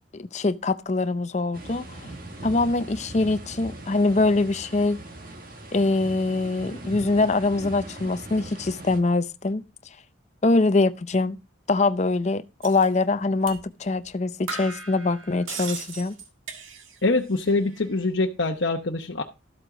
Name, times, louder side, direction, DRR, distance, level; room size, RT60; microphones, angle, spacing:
voice 1, 0.1-2.0 2.4-5.0 5.7-9.6 10.4-11.4 11.7-16.2, left 3 dB, 35° left, 0.5 m, -23 dB
sound 1, 1.5-9.0, right 2 dB, 45° right, 1.7 m, -40 dB
sound 2, 12.6-12.9 13.5-13.6 14.0-14.1 14.5-17.1 17.4-18.0, right 5 dB, 85° right, 1.7 m, -38 dB
voice 2, 17.0-19.2, left 2 dB, 65° left, 0.9 m, -24 dB
13.0 x 7.9 x 3.8 m
head